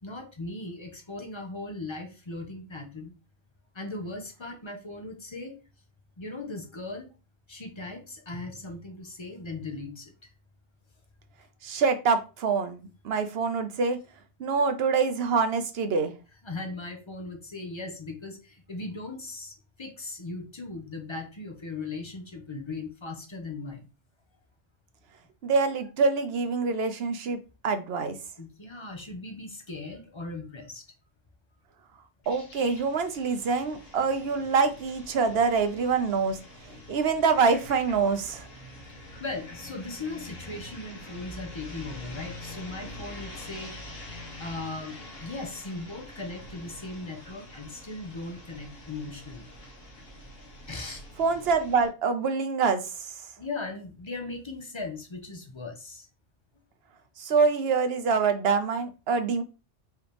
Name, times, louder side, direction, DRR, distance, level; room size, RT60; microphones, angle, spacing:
voice 1, 0.0-3.1 3.7-5.6 6.2-7.1 7.5-10.3 16.4-23.9 28.4-30.8 36.7-36.8 38.9-44.1 44.4-49.5 50.7-51.0 53.4-56.1, left 3 dB, 30° left, 4 dB, 0.7 m, -38 dB
voice 2, 11.6-14.0 14.4-16.1 25.4-28.2 32.3-36.4 36.9-38.5 51.2-53.1 57.2-59.4, right 5 dB, 65° right, 8 dB, 0.9 m, -25 dB
sound 1, 32.2-51.9, left 1 dB, 55° left, 1.5 m, -45 dB
4.7 x 3.0 x 3.3 m, 0.32 s
omnidirectional pair, 1.2 m